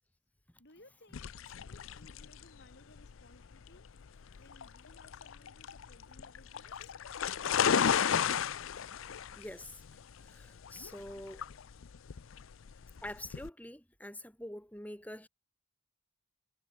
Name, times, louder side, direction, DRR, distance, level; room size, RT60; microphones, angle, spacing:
voice 1, 0.6-3.8 4.4-6.9, left 1 dB, 55° left, 7.6 m, -61 dB
sound 1, 1.1-13.5, left 7 dB, 75° left, 0.5 m, -34 dB
voice 2, 9.3-9.8 10.2-11.4 13.0-15.3, left 1 dB, 5° left, 3.8 m, -45 dB
head